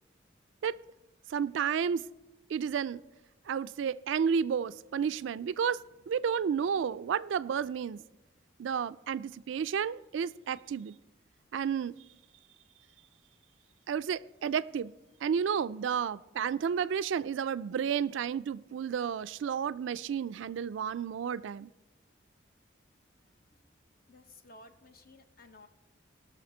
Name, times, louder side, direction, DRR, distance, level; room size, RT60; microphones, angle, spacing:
voice 1, 1.3-2.0 2.5-3.0 3.5-5.8 6.1-8.0 8.6-11.0 11.5-12.0 13.9-14.9 15.2-21.7, right 7 dB, 75° right, 17 dB, 0.3 m, -31 dB
voice 2, 24.1-25.7, left 2 dB, 50° left, 8 dB, 0.9 m, -55 dB
18.5 x 6.5 x 4.3 m, 1.0 s
head